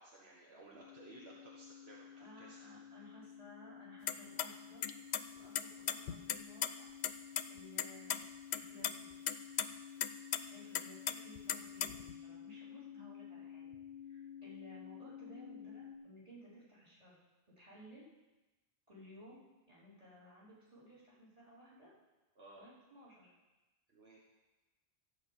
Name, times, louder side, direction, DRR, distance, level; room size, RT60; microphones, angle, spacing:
voice 1, 0.0-2.6 22.4-22.6 23.9-24.2, right 2 dB, 70° right, -3 dB, 1.7 m, -57 dB
sound 1, 0.7-16.0, left 9 dB, 15° left, 1.5 m, -52 dB
voice 2, 2.1-5.1 5.4-6.9 7.5-8.3 8.7-9.3 10.4-13.8 14.0-17.2 17.6-18.0 18.9-21.9 22.6-23.3, equal, 35° right, -8 dB, 4.7 m, -58 dB
sound 2, 4.1-4.5 4.8-5.2 5.6-6.7 7.0-7.1 7.4-7.5 7.8-8.2 8.5-8.9 9.3-9.7 10.0-10.4 10.7-12.1, left 9 dB, 85° left, 0.9 m, -35 dB
13.5 x 5.5 x 8.2 m, 1.1 s
omnidirectional pair, 1.1 m